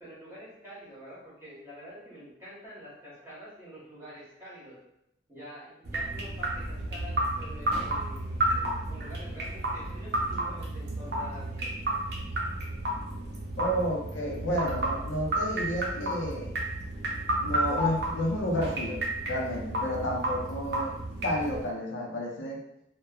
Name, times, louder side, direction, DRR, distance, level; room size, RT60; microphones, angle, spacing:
voice 1, 0.0-4.8 5.3-11.7, equal, 15° right, -9 dB, 1.0 m, -47 dB
sound 1, 5.8-21.7, right 1 dB, 55° right, 0.5 m, -32 dB
voice 2, 13.6-16.5 17.4-20.9 21.2-22.6, equal, 90° left, -2 dB, 0.6 m, -31 dB
2.9 x 2.1 x 2.3 m, 0.79 s
head